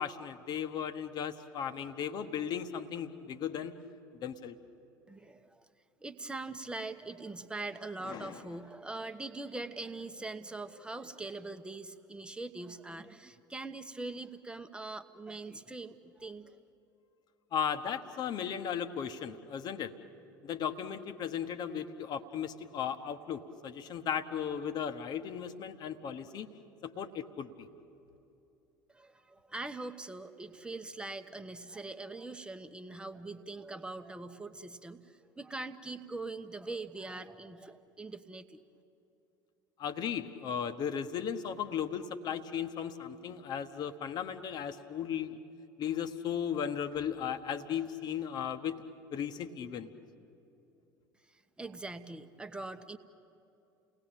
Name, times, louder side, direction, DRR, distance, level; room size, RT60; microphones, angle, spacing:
voice 1, 0.0-3.7 4.2-4.6 8.0-8.4 17.5-19.9 20.4-26.5 26.8-27.7 39.8-45.4 45.8-48.8 49.1-49.9, left 8 dB, 40° left, 9 dB, 1.4 m, -36 dB
voice 2, 5.1-5.6 6.0-16.6 28.9-38.6 51.3-53.0, right 2 dB, 10° right, 9 dB, 1.2 m, -42 dB
30.0 x 19.0 x 9.1 m, 2.9 s
figure-of-eight pair, 65°, 11 cm